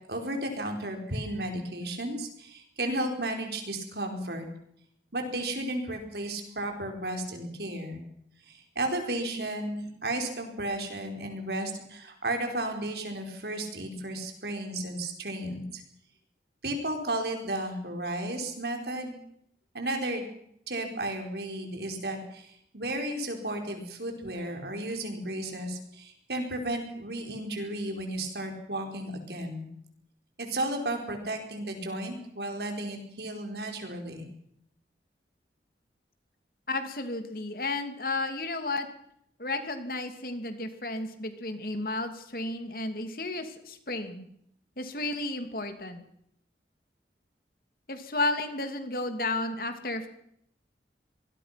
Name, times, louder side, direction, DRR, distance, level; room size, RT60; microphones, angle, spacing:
voice 1, 0.1-4.5 5.1-8.0 8.5-15.8 16.6-19.1 19.7-20.2 20.7-29.7 30.4-34.3, right 1 dB, 70° right, 4 dB, 5.1 m, -33 dB
voice 2, 36.7-38.9 39.4-44.3 44.8-46.0 47.9-50.1, left 2 dB, 55° left, 7 dB, 2.9 m, -32 dB
25.0 x 20.0 x 6.1 m, 0.72 s
head